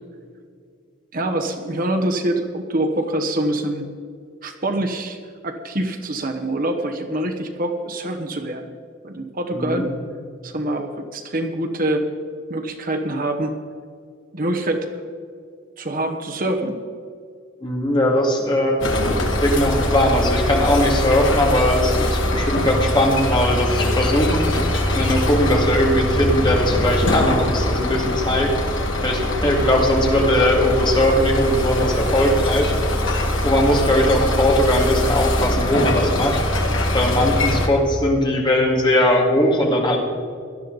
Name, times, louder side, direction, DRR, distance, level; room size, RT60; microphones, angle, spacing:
voice 1, 1.1-3.9 4.4-8.7 9.0-9.9 10.4-12.1 12.5-13.5 14.3-15.0 15.8-16.7, right 1 dB, 45° right, 5 dB, 1.0 m, -25 dB
voice 2, 9.5-9.9 17.6-18.8 19.4-24.5 24.9-28.5 29.0-32.7 33.4-36.4 36.9-40.0, left 1 dB, 25° left, 0 dB, 2.3 m, -19 dB
sound 1, 18.8-37.7, left 1 dB, 75° left, 2.0 m, -22 dB
17.5 x 12.5 x 4.0 m, 2.3 s
head